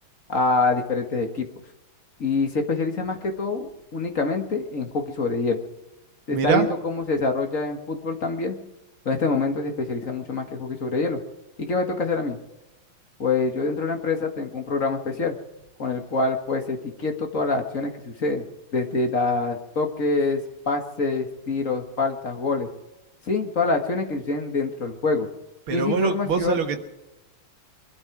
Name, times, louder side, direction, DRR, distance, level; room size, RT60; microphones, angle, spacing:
voice 1, 0.3-1.5 2.2-5.6 6.3-8.6 9.1-11.2 11.6-12.4 13.2-15.4 15.8-18.4 18.7-20.4 20.7-22.7 23.3-25.3 25.7-26.6, left 3 dB, 40° left, 4 dB, 1.9 m, -25 dB
voice 2, 6.3-6.7 25.7-26.8, right 6 dB, 75° right, 6 dB, 2.3 m, -23 dB
23.5 x 12.5 x 4.7 m, 0.96 s
omnidirectional pair, 2.3 m